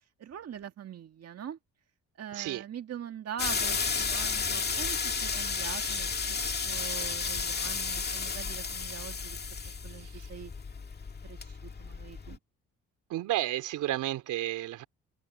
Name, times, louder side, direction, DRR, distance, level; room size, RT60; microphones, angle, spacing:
voice 1, 0.2-1.6 2.2-9.4 9.8-10.5 11.2-12.4, right 9 dB, 55° right, 1.9 m, -43 dB
voice 2, 2.3-2.6 9.6-10.3 13.1-14.8, right 14 dB, 90° right, 3.1 m, -33 dB
sound 1, 3.4-12.4, left 5 dB, 35° left, 2.3 m, -33 dB
cardioid pair, 90°, 30 cm